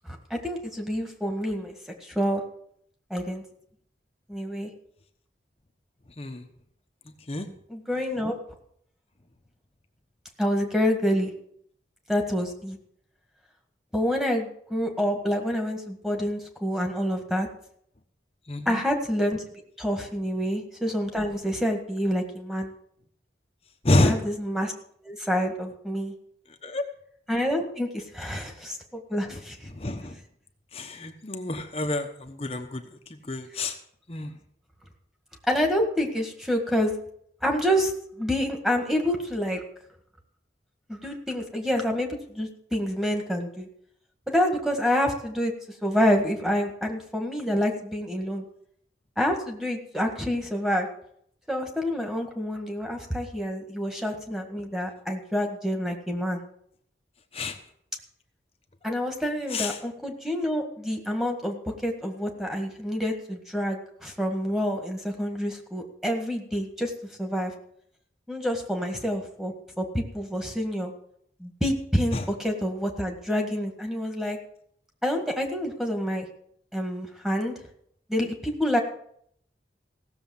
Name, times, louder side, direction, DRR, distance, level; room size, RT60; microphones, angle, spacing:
voice 1, 0.0-1.7 2.0-2.4 3.1-3.4 4.3-4.7 7.7-8.4 10.4-11.3 12.1-12.8 13.9-17.5 18.7-19.4 19.8-22.7 24.0-24.7 25.0-26.1 27.3-29.7 35.5-36.9 37.4-37.9 38.2-39.6 40.9-43.7 44.3-45.5 45.8-48.4 49.2-50.9 51.5-56.4 58.8-66.9 67.2-67.5 68.3-70.9 71.4-74.4 75.0-76.3 76.7-77.5 78.1-78.8, equal, ahead, 3 dB, 1.8 m, -27 dB
voice 2, 18.5-18.8 23.8-24.2 26.6-26.8 29.7-30.2 30.7-32.8 33.1-33.7 34.1-34.3 57.3-57.6 59.5-59.8 72.1-72.3, left 2 dB, 35° left, 5 dB, 1.0 m, -27 dB
16.5 x 7.0 x 7.2 m, 0.68 s
head